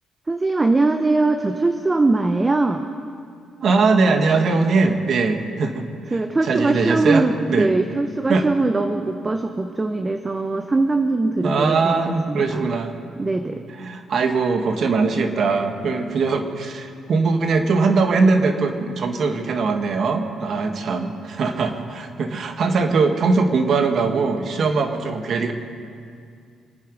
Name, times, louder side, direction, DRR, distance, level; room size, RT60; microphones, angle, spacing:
voice 1, 0.3-2.8 6.1-12.7 13.2-13.6, right 2 dB, 20° right, 6 dB, 0.8 m, -21 dB
voice 2, 3.6-7.7 8.3-8.5 11.4-12.9 13.7-25.5, right 4 dB, 60° right, 5 dB, 1.6 m, -21 dB
26.5 x 9.6 x 5.2 m, 2.3 s
cardioid pair, 90°, 0 cm